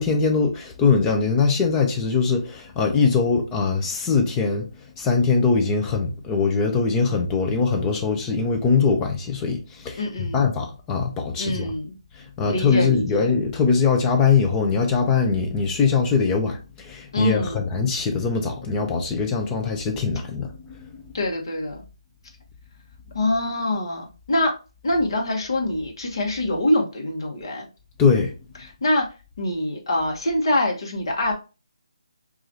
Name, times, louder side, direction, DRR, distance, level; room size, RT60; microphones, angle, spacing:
voice 1, 0.0-4.7 5.0-11.7 12.2-21.0 28.0-28.3, left 5 dB, 10° left, 0.4 m, -22 dB
voice 2, 10.0-10.5 11.4-11.9 12.5-13.3 17.1-17.7 21.1-21.8 23.1-24.5 24.8-27.6 28.6-29.1 29.4-31.3, left 1 dB, 50° left, 1.0 m, -24 dB
4.6 x 2.4 x 2.6 m
hypercardioid pair, 170°, 3 cm